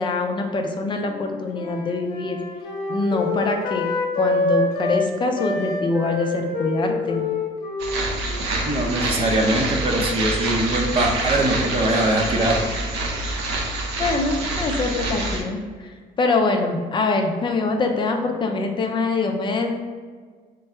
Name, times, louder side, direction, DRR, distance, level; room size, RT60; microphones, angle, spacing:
voice 1, 0.0-2.4 2.9-3.9 4.2-7.3 14.0-19.8, left 3 dB, 30° left, 3 dB, 0.5 m, -24 dB
Wind instrument woodwind instrument, 1.0-5.0 5.3-9.8, left 3 dB, 65° left, 0.8 m, -27 dB
sound 1, 7.8-15.4, right 2 dB, 90° right, 0.7 m, -26 dB
voice 2, 8.6-12.6, right 1 dB, 35° right, 1 dB, 0.7 m, -22 dB
3.8 x 2.2 x 4.3 m, 1.5 s
cardioid pair, 110°, 17 cm